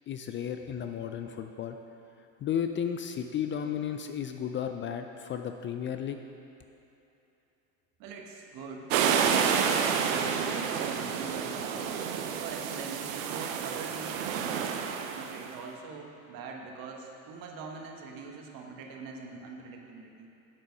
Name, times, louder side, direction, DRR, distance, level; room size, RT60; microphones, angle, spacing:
voice 1, 0.1-1.8 2.4-6.2, left 8 dB, 30° left, 6 dB, 0.4 m, -33 dB
voice 2, 8.0-8.9 9.3-11.9 12.4-14.7 15.1-20.3, right 4 dB, 55° right, 1 dB, 1.4 m, -43 dB
sound 1, 8.9-15.5, right 7 dB, 75° right, 0.8 m, -29 dB
8.0 x 7.4 x 5.3 m, 2.8 s
hypercardioid pair, 85°, 40 cm